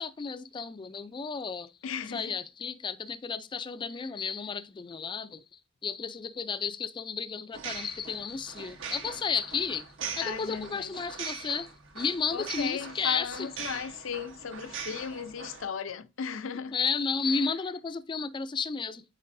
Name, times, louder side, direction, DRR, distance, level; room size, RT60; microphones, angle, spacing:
voice 1, 0.0-1.7 2.1-5.4 5.8-9.9 10.2-13.5 16.7-19.0, left 5 dB, 25° left, 0.3 m, -33 dB
voice 2, 1.8-2.4 10.2-10.9 12.3-16.8 17.3-17.5, left 6 dB, 75° left, 0.6 m, -36 dB
sound 1, 7.5-15.7, right 6 dB, 75° right, 1.1 m, -41 dB
8.2 x 4.4 x 2.6 m
head